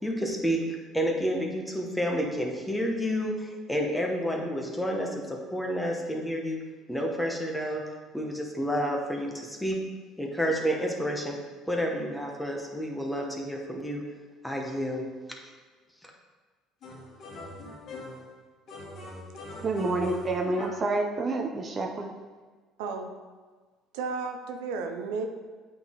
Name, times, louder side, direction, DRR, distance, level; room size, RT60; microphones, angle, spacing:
voice 1, 0.0-6.6 6.9-7.8 8.1-9.8 10.2-11.4 11.7-14.0 14.4-15.1 16.0-16.1, equal, 5° left, 0 dB, 1.2 m, -30 dB
sound 1, 16.8-18.3 18.7-20.9, left 2 dB, 55° left, 2.0 m, -42 dB
voice 2, 19.6-22.1, right 2 dB, 35° right, 3 dB, 0.7 m, -28 dB
voice 3, 22.8-23.1 23.9-25.3, right 4 dB, 85° right, 5 dB, 0.6 m, -33 dB
8.1 x 4.2 x 3.8 m, 1.4 s
supercardioid pair, 90°, 0 cm